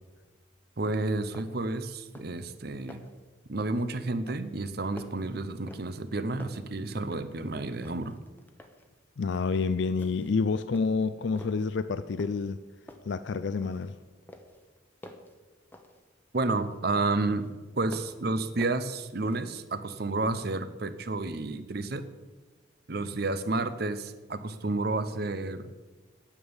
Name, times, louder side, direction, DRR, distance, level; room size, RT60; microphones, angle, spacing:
voice 1, 0.8-3.0 3.5-8.2 16.3-17.5 17.8-22.0 22.9-25.7, right 2 dB, 55° right, 12 dB, 0.8 m, -31 dB
sound 1, 0.9-1.0 1.3-1.7 2.0-2.4 2.7-3.2 3.6-3.9 4.3-6.1 6.4-7.5 7.8-8.9 9.3-9.6 10.0-10.4 10.7-11.7 12.2-12.6 12.9-14.0 14.3-16.8 17.2-18.3 18.6-19.6, left 1 dB, 10° left, 1.0 m, -49 dB
voice 2, 9.2-12.6 13.1-13.9, left 4 dB, 65° left, 12 dB, 0.4 m, -28 dB
9.9 x 9.0 x 7.1 m, 1.3 s
head